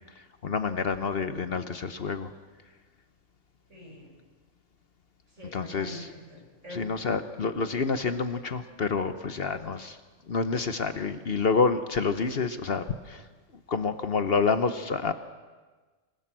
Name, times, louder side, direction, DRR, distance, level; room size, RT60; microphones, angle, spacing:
voice 1, 0.4-2.3 5.5-6.1 6.7-10.0 10.3-13.2 13.7-15.1, left 4 dB, 50° left, 10 dB, 1.1 m, -28 dB
voice 2, 3.7-4.1 5.3-6.8, left 1 dB, 70° right, -2 dB, 7.5 m, -44 dB
25.5 x 17.0 x 7.5 m, 1.3 s
omnidirectional pair, 1.3 m